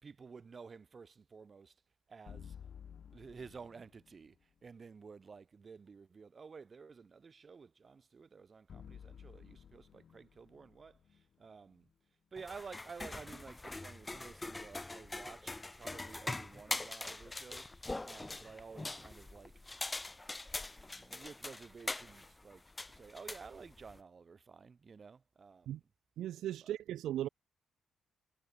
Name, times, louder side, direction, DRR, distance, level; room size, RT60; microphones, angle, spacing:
voice 1, 0.0-1.8 2.1-2.6 3.1-11.9 12.3-19.5 20.2-25.9 26.6-26.7, right 5 dB, 35° right, 2.8 m, -53 dB
sound 1, 2.3-4.4 8.7-11.9, left 8 dB, 55° left, 2.7 m, -54 dB
sound 2, 12.4-24.0, left 2 dB, 15° left, 0.6 m, -43 dB
voice 2, 26.2-27.3, right 12 dB, 80° right, 0.4 m, -37 dB
cardioid pair, 90°, 0 cm